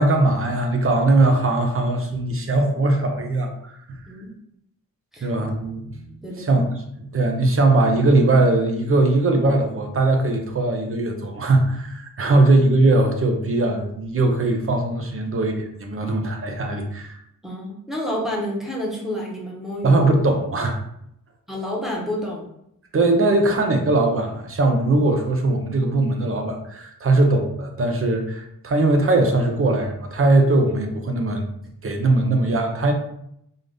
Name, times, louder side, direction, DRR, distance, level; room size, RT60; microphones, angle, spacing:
voice 1, 0.0-4.0 5.2-6.6 7.0-17.2 19.8-20.8 22.9-31.4 31.8-32.9, right 2 dB, 40° right, 4 dB, 0.7 m, -20 dB
voice 2, 6.2-6.6 12.2-12.4 17.4-20.0 21.5-22.5, left 1 dB, ahead, -3 dB, 1.0 m, -29 dB
3.9 x 2.5 x 3.3 m, 0.75 s
wide cardioid pair, 115°, 33 cm